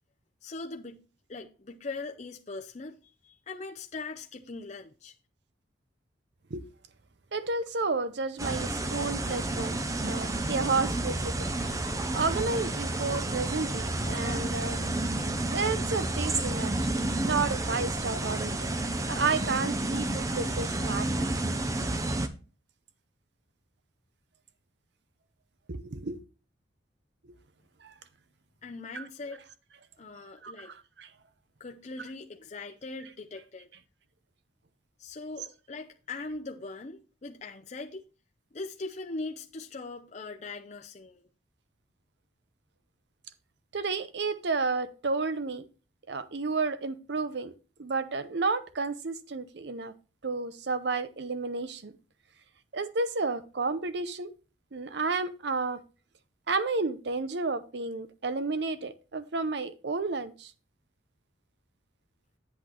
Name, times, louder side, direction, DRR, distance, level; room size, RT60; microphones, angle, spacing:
voice 1, 0.4-1.0 1.3-5.1 28.6-29.4 30.0-30.7 31.6-33.7 35.0-38.0 38.5-41.3, left 3 dB, 40° left, 0.6 m, -40 dB
voice 2, 7.3-11.5 12.1-14.8 15.5-18.5 19.1-21.3 25.7-26.2 27.8-27.9 28.9-29.0 30.4-31.1 43.7-45.6 46.1-47.5 47.8-49.9 50.2-51.9 52.7-54.3 54.7-55.8 56.5-60.5, right 4 dB, 60° right, 0.7 m, -31 dB
sound 1, 8.4-22.3, right 2 dB, 20° right, 0.6 m, -30 dB
8.1 x 8.1 x 3.0 m
head